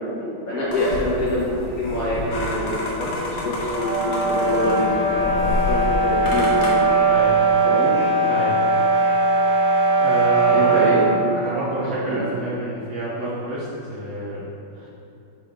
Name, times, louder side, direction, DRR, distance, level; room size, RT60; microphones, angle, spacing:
voice 1, 0.0-6.6 7.6-7.9 10.5-11.0 11.8-12.2, left 1 dB, 45° left, -8 dB, 1.5 m, -26 dB
sound 1, 0.7-6.7, left 1 dB, 75° left, 1.8 m, -29 dB
sound 2, 3.7-11.2, right 2 dB, 80° right, 2.0 m, -19 dB
voice 2, 5.2-5.6 7.1-7.3 8.3-8.6 10.0-11.0 11.3-14.4 14.7-14.9, right 1 dB, 65° right, -7 dB, 0.7 m, -28 dB
6.1 x 4.4 x 3.6 m, 2.8 s
omnidirectional pair, 2.4 m